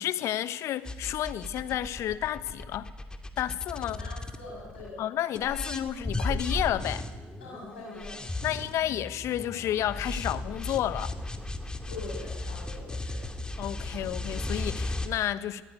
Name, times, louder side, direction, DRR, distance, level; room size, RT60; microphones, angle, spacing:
voice 1, 0.0-2.9 3.4-4.0 5.0-7.0 8.4-11.1 13.6-15.6, left 12 dB, 60° left, 1.3 m, -31 dB
sound 1, 0.8-4.9 5.3-15.1, left 2 dB, 15° left, 2.5 m, -35 dB
voice 2, 3.9-5.0 7.4-8.2 11.9-13.3, left 3 dB, 90° left, 7.3 m, -43 dB
21.5 x 15.0 x 9.7 m
hypercardioid pair, 60°, 6 cm